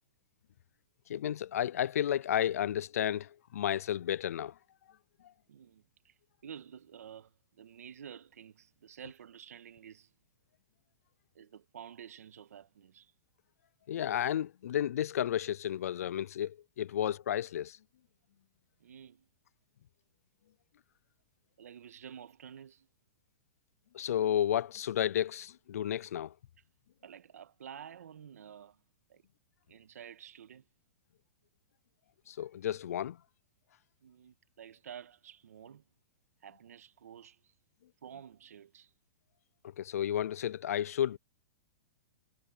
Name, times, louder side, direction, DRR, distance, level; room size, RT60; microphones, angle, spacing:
voice 1, 1.1-4.5 13.9-17.8 23.9-26.3 32.3-33.2 39.8-41.2, left 10 dB, 85° left, 0.4 m, -32 dB
voice 2, 5.5-6.1 6.4-10.1 11.4-13.1 18.8-19.3 21.6-22.9 27.0-28.8 29.1-29.2 29.7-30.6 34.0-35.8 36.4-37.5 38.0-38.9, right 8 dB, 90° right, 1.7 m, -50 dB
hypercardioid pair, 150°, 8 cm